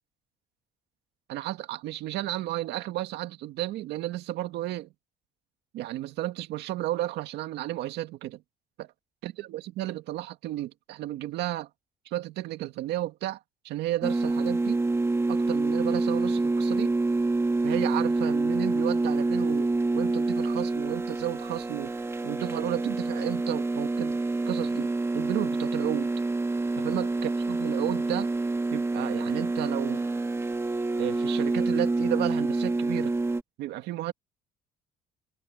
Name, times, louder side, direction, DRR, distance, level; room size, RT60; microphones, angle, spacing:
voice 1, 1.3-4.9 5.7-8.4 8.8-8.9 9.2-11.7 12.1-13.4 13.6-14.8 15.3-16.9 17.6-19.7 19.9-22.0 22.2-26.1 26.8-28.3 28.7-30.0 31.0-33.1 33.6-34.1, right 14 dB, 80° right, 2.0 m, -33 dB
sound 1, 14.0-33.4, right 3 dB, 15° right, 1.7 m, -27 dB
cardioid pair, 110°, 17 cm